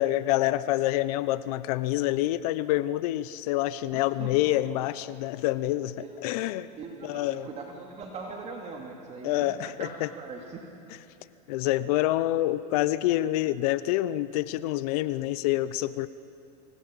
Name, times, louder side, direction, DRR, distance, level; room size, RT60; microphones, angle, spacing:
voice 1, 0.0-6.0 6.2-6.7 7.0-7.5 9.2-10.1 11.5-16.1, left 15 dB, 65° left, 16 dB, 0.8 m, -27 dB
voice 2, 3.9-4.6 5.9-6.2 6.7-10.6, right 4 dB, 30° right, 1 dB, 2.8 m, -41 dB
26.0 x 17.5 x 9.0 m, 2.6 s
supercardioid pair, 130°, 21 cm